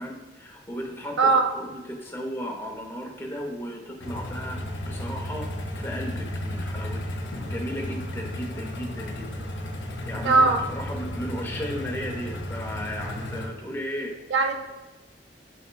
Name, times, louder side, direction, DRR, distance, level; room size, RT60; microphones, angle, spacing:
voice 1, 0.0-7.0 7.3-9.3 10.0-14.1, equal, 15° left, 1 dB, 0.6 m, -35 dB
sound 1, 4.0-13.5, left 1 dB, 80° left, 0.5 m, -34 dB
voice 2, 10.2-10.6 14.3-14.6, right 3 dB, 75° right, 5 dB, 0.5 m, -19 dB
4.1 x 4.1 x 2.2 m, 1.1 s
head